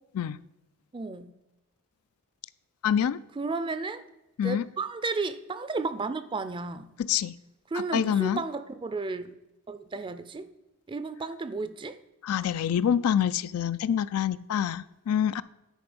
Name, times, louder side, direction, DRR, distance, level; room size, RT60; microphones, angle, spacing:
voice 1, 0.9-1.3 3.4-4.0 4.4-6.9 7.7-9.3 9.7-10.5 10.9-12.0, right 3 dB, 20° right, 0.4 m, -33 dB
voice 2, 2.8-3.2 4.4-4.7 7.1-7.3 7.9-8.4 12.2-15.4, left 9 dB, 80° left, 0.3 m, -26 dB
10.0 x 4.5 x 5.1 m
head